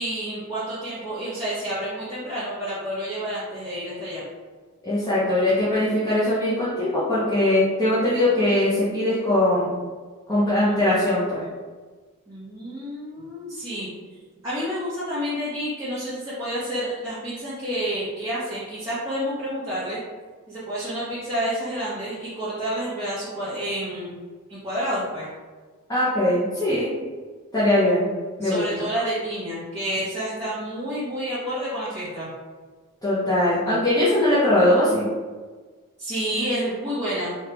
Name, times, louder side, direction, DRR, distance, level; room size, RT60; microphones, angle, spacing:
voice 1, 0.0-4.2 10.6-10.8 12.3-13.9 14.4-20.0 20.5-24.2 24.5-25.3 28.4-32.3 36.0-37.5, equal, 15° right, -13 dB, 0.9 m, -29 dB
voice 2, 4.8-9.8 10.3-11.4 25.9-26.9 27.5-28.1 28.4-28.9 33.0-35.0, left 1 dB, 15° left, -10 dB, 0.6 m, -21 dB
3.3 x 2.3 x 2.9 m, 1.4 s
head